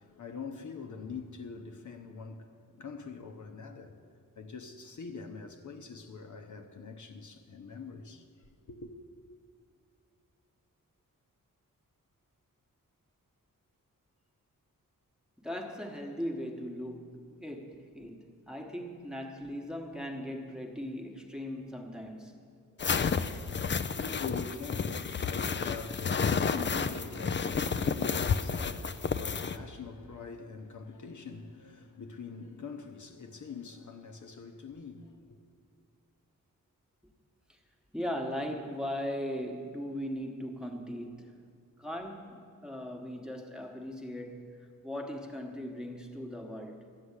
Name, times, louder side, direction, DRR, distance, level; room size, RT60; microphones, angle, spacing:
voice 1, 0.0-4.0 4.4-8.9 23.4-35.4, left 5 dB, 60° left, 0.9 m, -44 dB
voice 2, 15.4-22.4 37.5-37.6 37.9-41.4 41.8-46.8, equal, ahead, 1.1 m, -39 dB
sound 1, 22.8-29.6, left 5 dB, 35° left, 0.4 m, -31 dB
13.0 x 7.7 x 9.8 m
wide cardioid pair, 155°, 34 cm